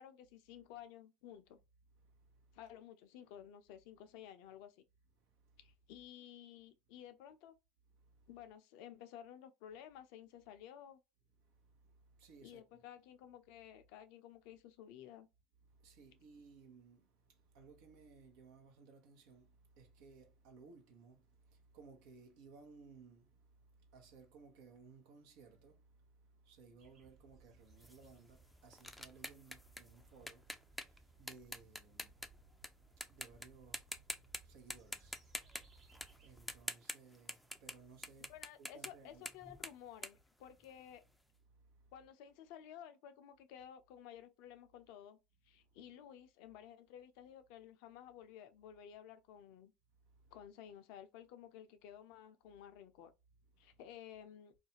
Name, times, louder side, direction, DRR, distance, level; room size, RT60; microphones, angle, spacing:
voice 1, 0.0-1.6 2.5-4.8 5.6-7.5 8.3-11.0 12.4-15.3 38.3-41.0 41.9-45.2 45.4-49.7 50.3-53.1 53.6-54.5, left 10 dB, 65° left, 0.4 m, -54 dB
voice 2, 2.0-2.6 5.2-5.7 7.9-8.3 11.4-12.8 15.6-39.3 41.5-41.9 45.5-45.8 49.9-50.4 53.5-53.8, right 4 dB, 70° right, 0.8 m, -61 dB
sound 1, 26.8-36.6, right 3 dB, 40° right, 1.0 m, -65 dB
sound 2, 27.8-32.7 33.0-33.5 33.7-34.4 34.7-37.8 38.0-41.0, left 1 dB, 5° left, 0.4 m, -46 dB
2.5 x 2.2 x 2.7 m
hypercardioid pair, 70°, 0 cm